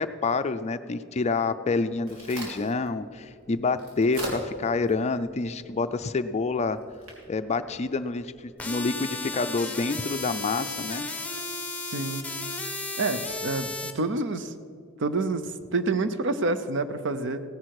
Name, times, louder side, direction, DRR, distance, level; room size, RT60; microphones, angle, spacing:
voice 1, 0.0-6.8 7.3-11.1, left 3 dB, 30° left, 11 dB, 0.4 m, -28 dB
Crack, 1.7-8.6, right 1 dB, 90° right, 3.2 m, -43 dB
sound 1, 8.6-13.9, left 3 dB, 5° left, 1.0 m, -34 dB
voice 2, 11.9-12.3 13.0-14.5 15.0-17.4, right 3 dB, 60° right, 11 dB, 0.7 m, -28 dB
16.5 x 10.5 x 4.8 m, 2.3 s
head